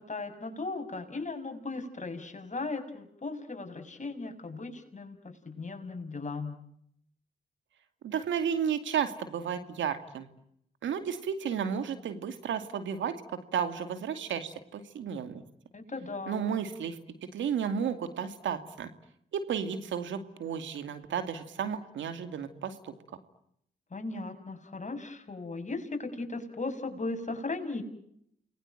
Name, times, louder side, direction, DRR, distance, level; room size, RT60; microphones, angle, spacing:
voice 1, 0.0-6.6 15.7-16.4 23.9-27.8, left 3 dB, 40° left, 6 dB, 6.5 m, -37 dB
voice 2, 8.0-10.3 10.8-13.1 13.5-15.4 16.3-18.9 19.3-22.9, right 7 dB, 85° right, 9 dB, 2.4 m, -33 dB
29.5 x 21.5 x 9.0 m, 0.72 s
supercardioid pair, 50°, 19 cm